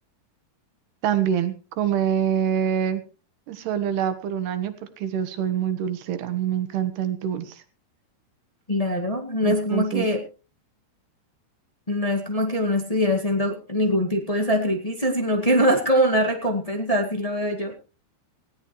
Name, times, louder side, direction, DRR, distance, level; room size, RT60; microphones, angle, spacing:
voice 1, 1.0-3.0 3.5-7.6 9.4-10.1, right 9 dB, 85° right, 10 dB, 3.5 m, -25 dB
voice 2, 8.7-10.2 11.9-17.7, equal, 30° left, 1 dB, 0.6 m, -23 dB
19.0 x 16.0 x 3.2 m, 0.33 s
omnidirectional pair, 4.5 m